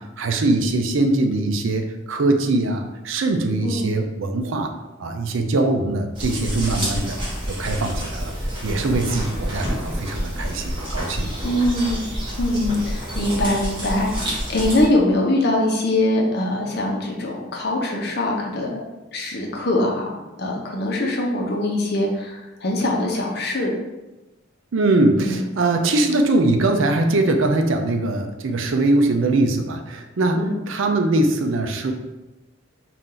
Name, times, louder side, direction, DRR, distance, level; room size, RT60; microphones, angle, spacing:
voice 1, 0.0-4.7 5.0-7.2 7.5-8.3 8.6-11.4 24.7-31.9, right 2 dB, 65° right, 5 dB, 0.5 m, -21 dB
sound 1, 6.1-14.9, equal, 25° right, 1.3 m, -28 dB
voice 2, 11.4-12.0 12.4-18.8 19.1-20.1 20.4-23.7 25.2-25.4 30.3-30.6, left 1 dB, 50° left, -1 dB, 0.8 m, -22 dB
4.2 x 2.5 x 3.8 m, 1.0 s
head